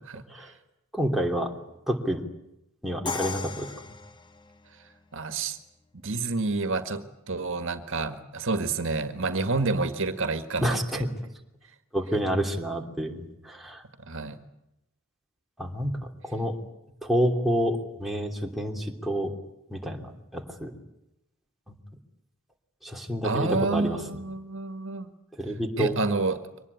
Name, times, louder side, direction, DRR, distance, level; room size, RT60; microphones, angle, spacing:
voice 1, 0.9-1.5 1.9-2.2 2.8-3.7 10.6-11.0 11.9-13.8 15.6-16.6 17.0-19.3 19.7-20.7 21.7-21.8 22.8-24.0 25.4-26.0, equal, ahead, 1 dB, 3.0 m, -28 dB
Crash cymbal, 3.1-5.0, left 4 dB, 20° left, 1.1 m, -36 dB
voice 2, 5.1-5.6 6.0-11.0 14.0-14.4 23.2-25.1 25.8-26.4, right 3 dB, 65° right, 9 dB, 1.8 m, -29 dB
24.0 x 19.5 x 9.7 m, 0.87 s
head